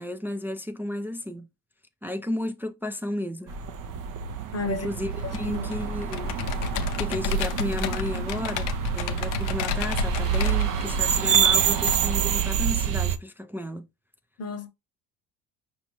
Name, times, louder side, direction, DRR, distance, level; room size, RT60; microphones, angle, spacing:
voice 1, 0.0-1.5 2.0-3.6 4.7-6.4 7.0-13.9, left 1 dB, 5° right, 0.3 m, -33 dB
sound 1, 3.5-13.2, right 8 dB, 45° right, 0.6 m, -27 dB
voice 2, 4.5-4.9 5.2-5.7 14.4-14.7, left 4 dB, 35° left, 0.9 m, -32 dB
Computer keyboard, 5.2-11.9, left 4 dB, 80° left, 0.6 m, -31 dB
5.1 x 2.7 x 2.9 m
supercardioid pair, 75°, 44 cm